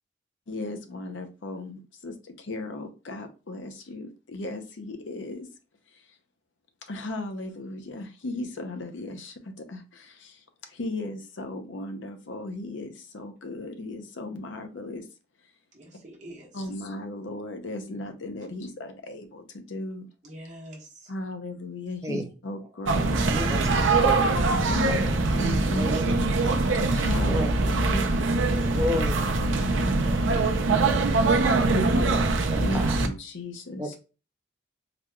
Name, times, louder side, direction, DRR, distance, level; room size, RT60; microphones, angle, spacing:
voice 1, 0.5-5.5 5.9-6.0 6.9-15.1 16.5-20.1 21.1-23.2 24.6-25.1 25.4-28.2 28.9-29.0 29.5-30.3 31.7-31.9 32.6-34.0, left 2 dB, 80° left, 0.7 m, -36 dB
voice 2, 15.7-16.5 20.2-21.1, right 1 dB, 40° right, 1.2 m, -45 dB
sound 1, 22.9-33.1, right 3 dB, 80° right, 0.6 m, -23 dB
voice 3, 23.3-24.5 24.9-25.1 25.8-26.0 27.3-27.5 28.7-29.1 30.8-31.6 32.5-33.0 33.8-34.0, equal, 15° right, 0.5 m, -32 dB
3.9 x 3.0 x 2.3 m
head